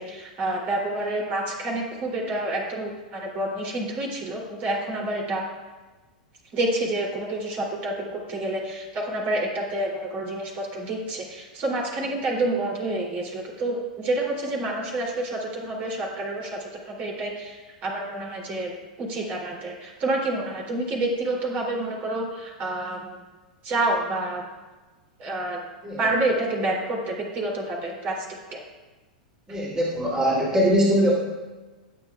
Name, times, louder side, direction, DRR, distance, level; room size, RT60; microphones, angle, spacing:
voice 1, 0.0-5.5 6.5-18.7 19.0-23.2 23.6-24.4 25.2-25.6 26.0-28.2 28.5-28.6, right 2 dB, 40° right, -1 dB, 3.0 m, -28 dB
voice 2, 29.5-31.2, equal, 15° right, -4 dB, 2.6 m, -22 dB
21.0 x 7.6 x 2.4 m, 1.2 s
hypercardioid pair, 105°, 4 cm